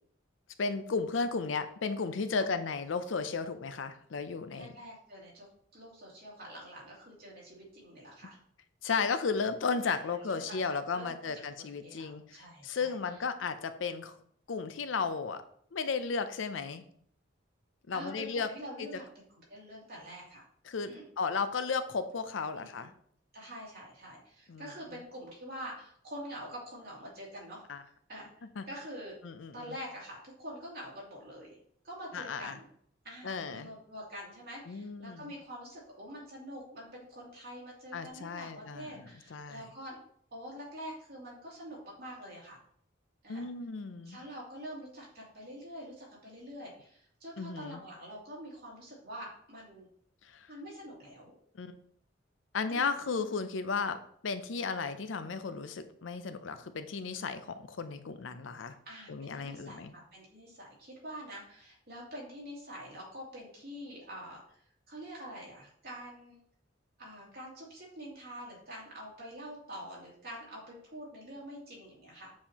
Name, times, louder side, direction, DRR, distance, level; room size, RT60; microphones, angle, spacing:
voice 1, 0.6-4.7 8.8-14.2 14.5-15.4 15.7-16.8 17.9-18.5 20.6-22.9 24.5-24.7 27.7-27.8 28.6-28.7 29.2-29.7 32.1-32.6 33.2-33.7 34.7-35.3 37.9-39.7 43.3-44.2 47.4-47.8 50.2-50.5 51.5-51.8 52.5-58.8 59.1-59.9, left 5 dB, 90° left, 11 dB, 0.6 m, -34 dB
voice 2, 4.5-5.5 5.7-8.4 9.9-11.3 11.6-12.9 17.9-19.2 19.5-20.4 20.9-21.0 22.5-22.7 23.3-27.6 28.1-28.3 28.7-29.2 29.5-31.6 31.8-32.7 33.0-40.0 40.3-42.6 43.2-43.5 44.0-49.9 50.5-51.3 52.6-53.0 58.9-66.4 67.0-72.3, equal, 55° right, -4 dB, 2.7 m, -46 dB
7.4 x 4.4 x 2.9 m, 0.63 s
head